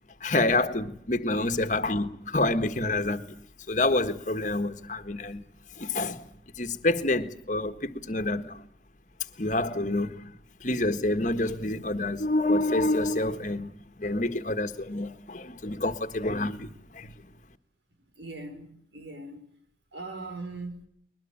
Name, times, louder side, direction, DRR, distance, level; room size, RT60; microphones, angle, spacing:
voice 1, 0.2-3.3 3.7-5.4 5.8-6.2 6.6-8.7 9.4-13.7 14.0-17.1, left 2 dB, 45° left, 1.6 m, -28 dB
voice 2, 18.2-19.4 19.9-20.8, right 2 dB, 90° right, 5.0 m, -40 dB
21.5 x 21.5 x 8.7 m
head